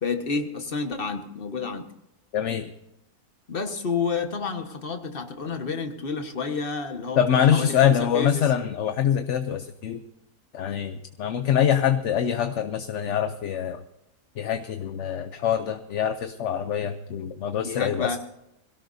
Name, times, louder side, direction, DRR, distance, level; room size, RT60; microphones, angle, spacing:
voice 1, 0.0-1.9 3.5-8.5 17.6-18.2, left 5 dB, 40° left, 5 dB, 1.5 m, -30 dB
voice 2, 2.3-2.7 7.2-10.0 10.5-13.8 14.4-18.2, left 9 dB, 60° left, 9 dB, 0.9 m, -24 dB
21.5 x 17.0 x 2.7 m, 0.86 s
omnidirectional pair, 1.6 m